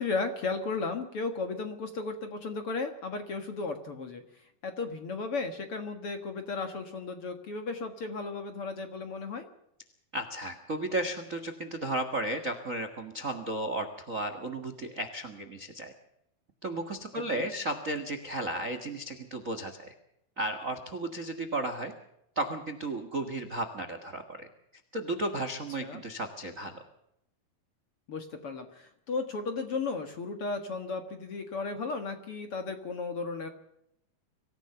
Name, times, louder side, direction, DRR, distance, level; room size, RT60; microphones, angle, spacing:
voice 1, 0.0-4.2 4.6-9.5 17.1-17.5 25.8-26.0 28.1-33.5, left 4 dB, 50° left, 7 dB, 1.8 m, -35 dB
voice 2, 10.1-15.9 16.6-19.9 20.4-21.9 22.3-24.5 24.9-26.8, right 1 dB, 80° right, 8 dB, 0.7 m, -34 dB
25.0 x 15.5 x 6.8 m, 0.79 s
omnidirectional pair, 4.5 m